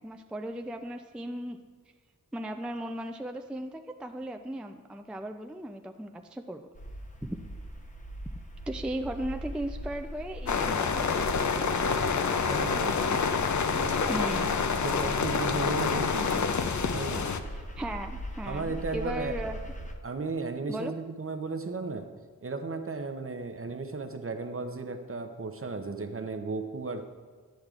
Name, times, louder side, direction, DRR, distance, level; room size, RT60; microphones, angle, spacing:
voice 1, 0.0-1.6 2.3-6.7 7.2-7.4 8.7-11.5 14.1-14.5 17.5-19.6 20.7-20.9, right 1 dB, 5° right, 6 dB, 0.3 m, -36 dB
sound 1, 6.7-20.0, equal, 20° left, 0.8 m, -40 dB
sound 2, 10.5-17.4, left 5 dB, 60° left, 0.5 m, -27 dB
voice 2, 12.4-13.1 13.7-14.1 14.8-16.5 16.9-17.3 18.4-19.4 20.0-22.1 22.4-27.1, right 3 dB, 40° right, 7 dB, 0.7 m, -35 dB
10.5 x 6.4 x 2.4 m, 1.5 s
cardioid pair, 45°, 34 cm